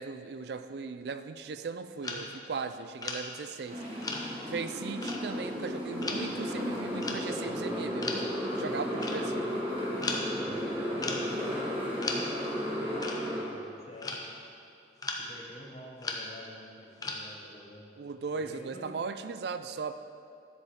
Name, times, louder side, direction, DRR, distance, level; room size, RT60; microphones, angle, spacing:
voice 1, 0.0-3.8 4.5-8.2 8.5-9.5 18.0-19.9, right 5 dB, 65° right, 11 dB, 0.4 m, -38 dB
sound 1, 2.0-2.6 3.0-3.2 4.0-4.5 5.0-5.2 6.0-6.3 7.0-7.3 8.0-8.3 9.0-9.3 10.0-10.3 11.0-11.4 12.0-12.3 13.0-13.2 14.0-14.3 15.0-15.2 16.0-16.2 17.0-17.3, left 3 dB, 20° left, 0.6 m, -36 dB
Motorcycle, 3.7-13.4, equal, 30° right, 1.7 m, -34 dB
voice 2, 10.4-13.0 13.3-14.3 15.2-17.9 18.3-18.9, left 1 dB, 35° left, -2 dB, 1.3 m, -48 dB
10.0 x 7.8 x 3.6 m, 2.6 s
head